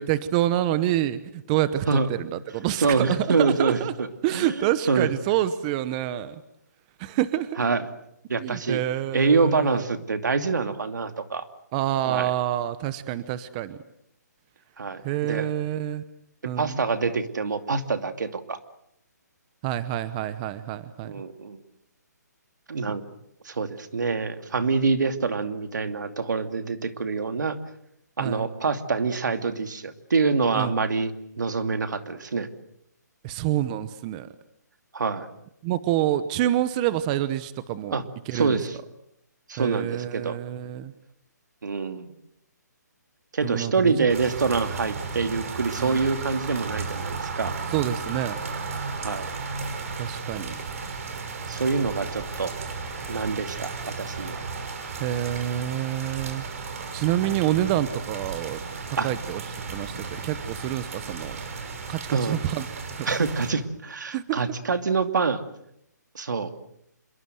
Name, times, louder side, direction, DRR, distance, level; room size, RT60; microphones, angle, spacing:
voice 1, 0.0-3.9 4.2-6.4 7.0-7.6 8.4-9.8 11.7-13.8 15.0-16.0 16.4-16.8 19.6-21.1 28.2-28.5 30.5-30.7 33.2-34.3 35.6-38.6 39.6-40.9 43.4-43.9 45.8-46.0 47.7-48.4 50.0-50.6 55.0-56.5 56.9-58.6 58.9-59.4 59.7-61.4 61.9-62.7 63.0-63.1 64.1-64.4, right 13 dB, 25° right, 14 dB, 0.9 m, -27 dB
voice 2, 2.8-5.1 7.6-7.8 8.3-8.8 9.1-11.5 12.1-12.3 14.8-15.5 16.6-18.6 21.0-21.6 22.7-23.0 23.4-27.6 28.2-32.5 34.9-35.3 37.9-38.0 38.3-38.8 39.5-40.4 41.6-42.1 43.3-47.5 49.0-49.3 50.4-50.5 51.5-52.5 53.1-54.4 57.2-57.4 59.0-59.1 62.1-62.4 63.1-65.4 66.1-66.5, right 4 dB, 80° right, 8 dB, 2.6 m, -26 dB
sound 1, 44.1-63.5, right 4 dB, 50° right, 6.0 m, -34 dB
27.0 x 22.5 x 7.8 m, 0.79 s
hypercardioid pair, 160°, 10 cm